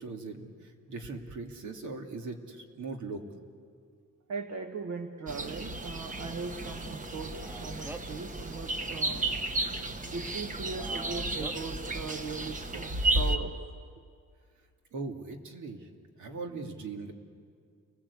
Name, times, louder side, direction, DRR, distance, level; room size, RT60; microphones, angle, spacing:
voice 1, 0.0-3.2 14.9-15.9 16.2-17.1, right 3 dB, 80° right, 3 dB, 2.6 m, -40 dB
voice 2, 4.3-9.3 10.1-13.6, right 4 dB, 60° right, 5 dB, 1.3 m, -39 dB
sound 1, 5.3-13.4, right 2 dB, 25° right, 1.1 m, -33 dB
Male speech man speaking, 7.3-8.2 10.7-11.6, right 2 dB, 5° right, 0.6 m, -43 dB
29.5 x 20.5 x 8.4 m, 2.2 s
wide cardioid pair, 145°, 29 cm